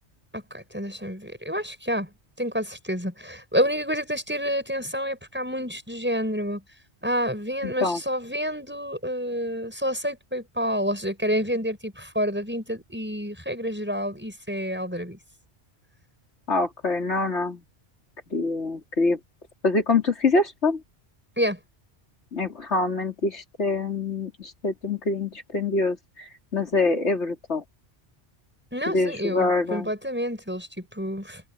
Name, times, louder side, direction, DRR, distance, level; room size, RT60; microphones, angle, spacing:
voice 1, 0.3-2.1 2.4-6.6 7.0-15.2 21.4-21.6 28.7-31.4, equal, 10° right, 7.2 m, -29 dB
voice 2, 7.6-8.0 16.5-17.6 18.3-19.2 19.6-20.8 22.3-27.6 28.9-29.9, left 3 dB, 80° left, 3.6 m, -25 dB
open air
omnidirectional pair, 1.2 m